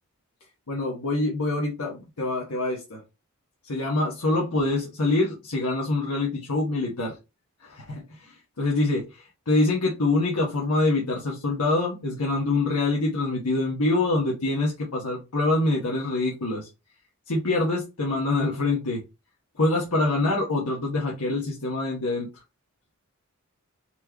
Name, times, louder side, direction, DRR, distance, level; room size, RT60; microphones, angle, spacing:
voice 1, 0.7-3.0 3.6-7.1 7.6-16.7 17.3-19.0 19.6-22.4, left 2 dB, 85° left, 1.2 m, -25 dB
4.4 x 3.0 x 3.4 m
head